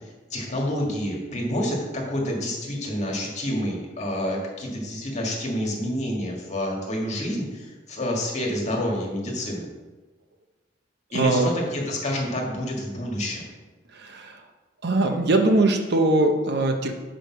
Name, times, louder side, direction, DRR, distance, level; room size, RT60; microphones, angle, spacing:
voice 1, 0.0-9.7 11.1-13.4, left 1 dB, 40° left, -1 dB, 1.7 m, -28 dB
voice 2, 11.1-11.5 13.9-14.4 14.8-16.9, right 2 dB, 60° right, 4 dB, 0.9 m, -21 dB
6.4 x 5.0 x 6.0 m, 1.2 s
head